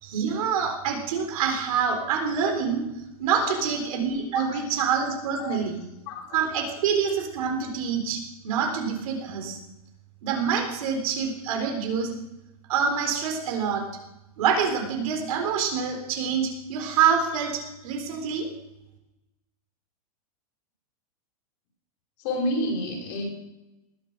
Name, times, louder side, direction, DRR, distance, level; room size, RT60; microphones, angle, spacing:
voice 1, 0.0-2.9 3.2-5.8 6.3-9.6 10.2-12.1 12.7-13.8 14.4-18.5, right 6 dB, 70° right, 3 dB, 4.1 m, -26 dB
voice 2, 3.4-3.7 4.3-4.6 5.4-5.6 6.1-6.4 22.2-23.3, left 1 dB, 50° left, 1 dB, 4.7 m, -30 dB
19.5 x 7.2 x 6.1 m, 0.94 s
supercardioid pair, 145°, 19 cm